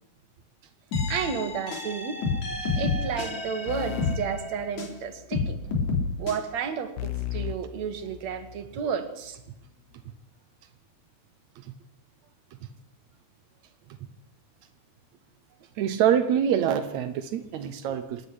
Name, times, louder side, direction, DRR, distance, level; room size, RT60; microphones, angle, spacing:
sound 1, 0.9-5.0 5.3-6.4, left 3 dB, 45° left, 4.5 m, -29 dB
voice 1, 1.1-2.2 2.8-5.6 6.2-9.4, right 7 dB, 55° right, 8 dB, 2.5 m, -32 dB
sound 2, 3.7-5.3 7.0-8.7, left 10 dB, 85° left, 1.5 m, -36 dB
voice 2, 15.8-18.3, right 9 dB, 70° right, 8 dB, 1.7 m, -25 dB
26.5 x 10.5 x 9.8 m, 0.86 s
omnidirectional pair, 4.5 m